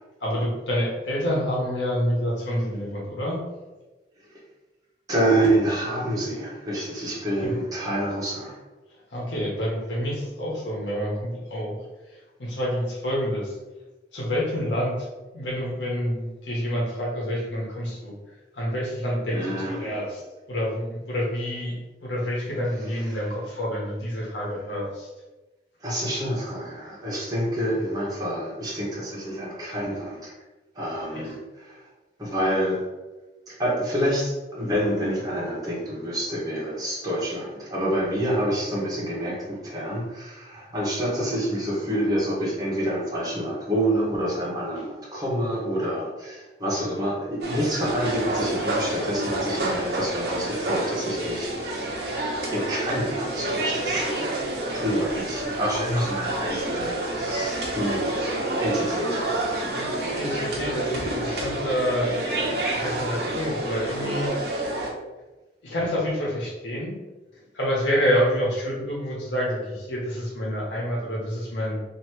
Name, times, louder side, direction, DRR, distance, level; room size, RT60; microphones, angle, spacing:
voice 1, 0.2-3.4 7.4-7.5 9.1-11.8 12.1-13.6 14.1-15.1 15.3-18.1 18.5-20.2 20.5-25.1 31.1-31.3 59.5-62.2 62.7-64.3 65.6-67.0 67.5-71.8, equal, 80° left, -4 dB, 1.1 m, -28 dB
voice 2, 5.1-8.5 19.3-20.0 25.8-30.3 30.7-31.8 32.2-32.8 33.5-51.5 52.5-54.4 54.7-58.1 58.6-59.3, right 1 dB, 20° right, -6 dB, 1.2 m, -27 dB
sound 1, 47.4-64.9, right 1 dB, 60° right, 0.9 m, -28 dB
3.1 x 2.8 x 4.5 m, 1.2 s
head